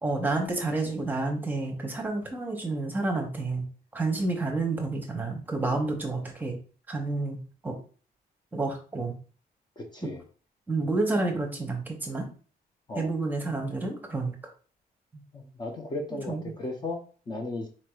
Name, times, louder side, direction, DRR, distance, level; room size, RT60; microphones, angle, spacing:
voice 1, 0.0-3.6 3.9-6.5 6.9-7.4 7.6-7.8 8.5-9.1 10.7-12.2 12.9-14.3 16.3-16.5, right 3 dB, 10° right, 2 dB, 0.9 m, -29 dB
voice 2, 9.8-10.2 10.8-10.9 12.9-13.1 15.3-17.7, left 2 dB, 25° left, 2 dB, 0.6 m, -36 dB
4.7 x 4.2 x 2.3 m, 0.39 s
wide cardioid pair, 175°, 17 cm